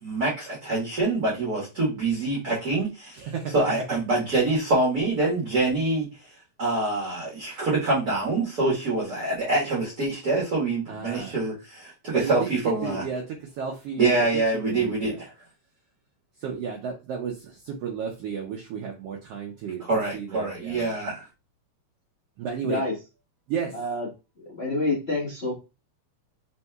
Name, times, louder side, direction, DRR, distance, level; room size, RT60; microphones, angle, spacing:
voice 1, 0.0-3.2 3.5-6.0 6.6-13.0 14.0-15.3 19.9-21.2, right 2 dB, 45° right, 1.5 m, -25 dB
voice 2, 3.1-3.5 10.9-11.4 12.1-12.5 12.8-14.1 14.5-15.2 16.4-19.8 20.1-20.9 22.4-22.8 23.5-23.8, right 7 dB, 70° right, 1.6 m, -33 dB
voice 3, 23.7-24.1 24.4-25.5, left 2 dB, 60° left, 0.6 m, -27 dB
4.6 x 4.1 x 2.3 m
omnidirectional pair, 3.3 m